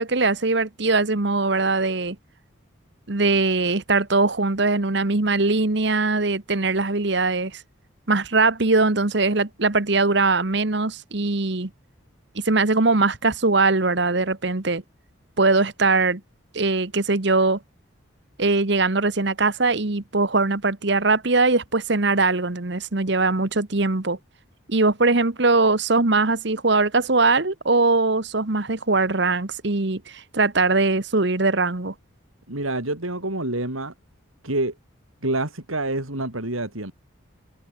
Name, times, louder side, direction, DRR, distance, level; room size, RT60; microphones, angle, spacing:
voice 1, 0.0-2.2 3.1-7.6 8.1-11.7 12.4-14.8 15.4-16.2 16.5-17.6 18.4-24.2 24.7-31.9, right 3 dB, 55° right, 1.3 m, -21 dB
voice 2, 32.5-33.9 34.4-34.7 35.2-36.9, right 2 dB, 90° right, 6.1 m, -27 dB
head